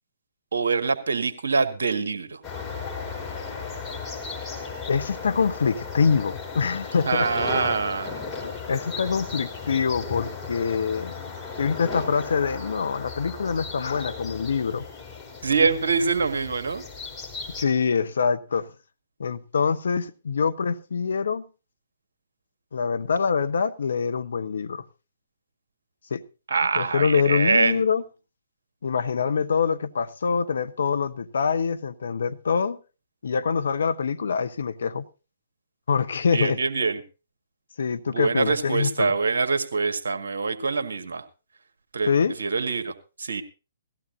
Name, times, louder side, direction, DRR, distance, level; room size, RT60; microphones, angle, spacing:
voice 1, 0.5-2.4 7.1-8.1 15.4-16.8 26.5-27.8 36.3-37.0 38.1-41.2 41.9-42.1 42.4-43.4, right 4 dB, 65° right, 1.6 m, -24 dB
sound 1, 2.4-17.7, left 5 dB, 15° left, 5.5 m, -36 dB
voice 2, 4.9-7.3 8.4-11.1 11.6-14.8 17.6-18.7 19.2-21.4 22.7-24.8 26.1-26.2 26.7-28.0 28.8-32.8 33.2-35.0 35.9-36.6 37.8-39.1 42.1-42.3, left 6 dB, 65° left, 0.8 m, -25 dB
18.0 x 14.5 x 2.6 m
figure-of-eight pair, 125°, 0 cm